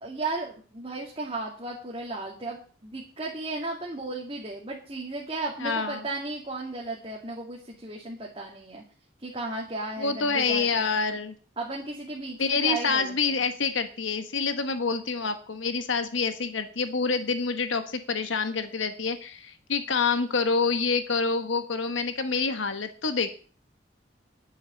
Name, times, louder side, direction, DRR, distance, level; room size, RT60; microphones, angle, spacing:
voice 1, 0.0-8.8 9.2-10.9 11.6-13.5, right 2 dB, 30° right, -3 dB, 2.2 m, -35 dB
voice 2, 5.6-6.0 10.0-11.3 12.4-23.3, left 4 dB, 80° left, 9 dB, 1.1 m, -27 dB
11.0 x 6.7 x 8.3 m, 0.41 s
head